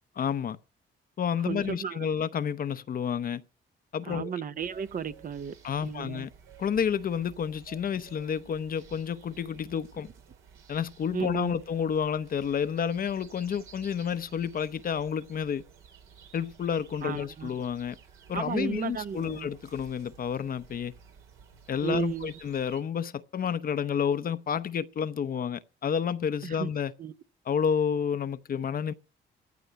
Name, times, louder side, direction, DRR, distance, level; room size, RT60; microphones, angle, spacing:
voice 1, 0.2-0.6 1.2-3.4 3.9-4.3 5.6-6.3 6.6-10.1 10.7-15.6 16.3-18.0 18.3-20.9 21.7-26.9 27.5-28.9, left 7 dB, 45° left, 0.7 m, -30 dB
voice 2, 1.4-2.1 4.1-5.5 5.8-6.3 11.1-11.5 17.0-17.5 18.3-19.5 21.8-22.3 26.4-26.7 27.0-27.1, right 7 dB, 45° right, 0.7 m, -34 dB
sound 1, 4.6-22.8, right 7 dB, 85° right, 2.4 m, -54 dB
14.5 x 5.6 x 9.7 m
cardioid pair, 90°, 20 cm